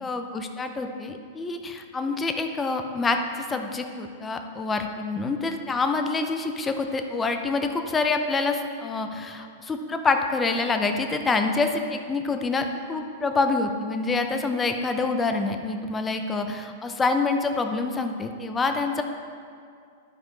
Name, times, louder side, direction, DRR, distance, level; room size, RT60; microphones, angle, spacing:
voice 1, 0.0-3.2 3.5-19.0, left 3 dB, 15° left, 5 dB, 0.7 m, -26 dB
12.0 x 5.2 x 4.0 m, 2.2 s
hypercardioid pair, 120°, 0 cm